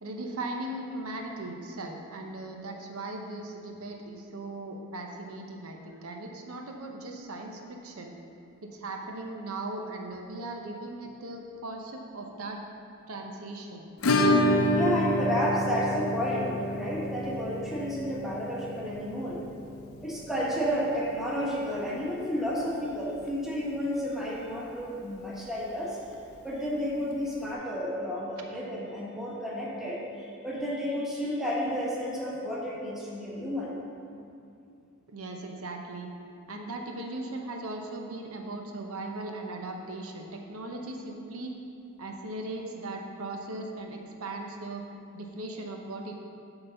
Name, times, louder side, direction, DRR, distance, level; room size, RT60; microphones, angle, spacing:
voice 1, 0.0-8.1 8.6-12.6 13.1-13.9 35.1-36.1 36.5-41.6 42.0-44.8 45.1-46.1, right 2 dB, 80° right, 2 dB, 0.8 m, -38 dB
Acoustic guitar / Strum, 14.0-22.6 22.9-23.0 23.3-23.4 23.7-23.8 25.9-26.0 27.1-27.2, left 1 dB, 75° left, 0.6 m, -29 dB
voice 2, 14.7-19.4 20.0-26.0 26.4-33.8, equal, ahead, -6 dB, 1.2 m, -31 dB
7.9 x 4.0 x 6.8 m, 2.5 s
head